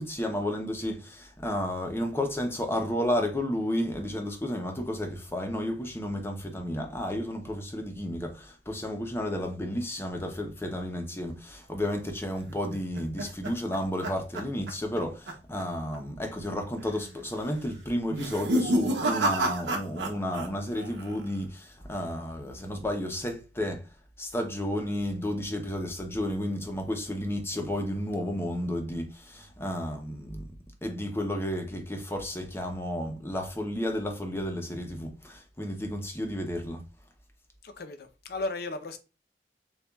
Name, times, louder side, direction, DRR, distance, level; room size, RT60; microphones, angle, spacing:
voice 1, 0.0-23.9 24.2-30.5 30.8-36.8, left 1 dB, 15° left, 0.7 m, -32 dB
sound 1, 12.5-15.0 15.3-15.6 15.9-16.0 16.8-17.2 18.1-20.5 20.7-21.3, right 1 dB, 90° right, 0.8 m, -30 dB
voice 2, 37.6-39.0, left 2 dB, 60° left, 0.6 m, -35 dB
6.7 x 2.3 x 2.3 m
head